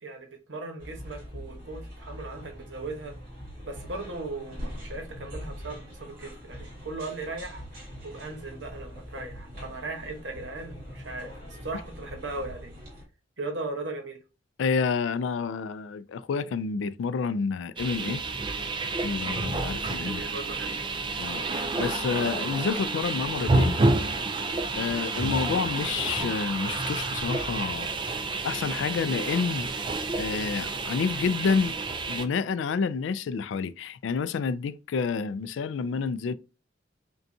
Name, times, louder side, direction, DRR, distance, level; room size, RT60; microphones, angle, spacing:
voice 1, 0.0-3.2 3.6-7.7 8.0-11.3 11.6-12.7 13.4-14.2 19.9-20.8, right 2 dB, 70° right, 1.1 m, -38 dB
sound 1, 0.8-13.0, equal, 55° right, 2.0 m, -42 dB
voice 2, 14.6-18.2 19.0-20.2 21.2-23.7 24.8-27.9 28.4-29.7 30.2-31.7 32.1-36.3, left 5 dB, 70° left, 0.3 m, -29 dB
sound 2, 17.8-32.2, right 3 dB, 25° right, 0.4 m, -29 dB
5.2 x 2.3 x 2.7 m
head